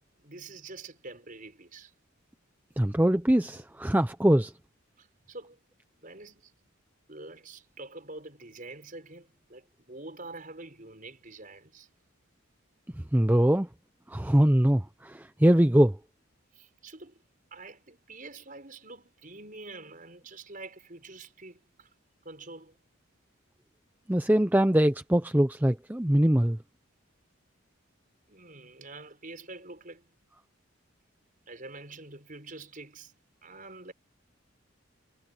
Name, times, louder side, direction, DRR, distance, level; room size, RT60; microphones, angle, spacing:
voice 1, 0.2-1.9 3.5-3.6 5.0-5.6 6.0-6.5 7.1-11.9 16.5-17.2 17.5-21.9 22.2-22.8 28.3-30.1 31.5-33.1 33.4-33.9, right 2 dB, 40° right, 6.6 m, -46 dB
voice 2, 2.8-4.5 13.1-13.7 14.1-16.0 24.1-26.6, right 1 dB, 10° right, 0.6 m, -22 dB
head